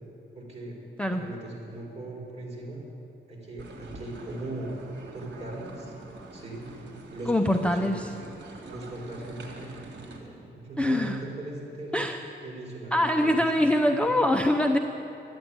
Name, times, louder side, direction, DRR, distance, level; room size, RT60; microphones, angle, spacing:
voice 1, 0.3-0.8 1.1-2.8 3.3-4.7 5.1-5.9 6.3-6.8 7.1-8.0 8.6-9.7 10.2-12.0 12.4-13.7 14.1-14.2, right 2 dB, 35° right, -3 dB, 4.5 m, -39 dB
sound 1, 3.6-10.2, right 2 dB, 65° right, 2.2 m, -45 dB
voice 2, 7.3-8.1 10.8-11.2 11.9-12.2 12.9-14.8, left 1 dB, 5° left, 4 dB, 0.6 m, -24 dB
13.0 x 10.5 x 8.8 m, 2.9 s
cardioid pair, 100°, 19 cm